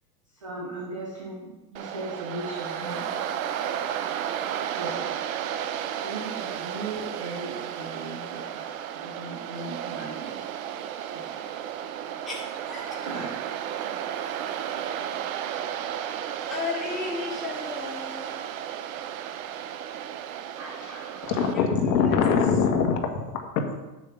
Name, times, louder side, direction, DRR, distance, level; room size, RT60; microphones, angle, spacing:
voice 1, 0.4-3.1 4.7-5.3 6.0-8.7 9.0-10.5 11.0-11.6 13.1-13.4 20.6-21.5, right 3 dB, 25° right, -1 dB, 0.3 m, -38 dB
Waves surf, 1.8-21.5, right 9 dB, 55° right, 0.7 m, -33 dB
voice 2, 2.8-3.2 12.3-13.1 16.2-18.4 21.5-21.6 22.0-22.2, left 4 dB, ahead, -8 dB, 2.2 m, -35 dB
voice 3, 21.3-23.0 23.3-23.6, left 6 dB, 75° left, 3 dB, 1.9 m, -23 dB
9.2 x 6.7 x 5.7 m, 1.1 s
supercardioid pair, 170°, 50 cm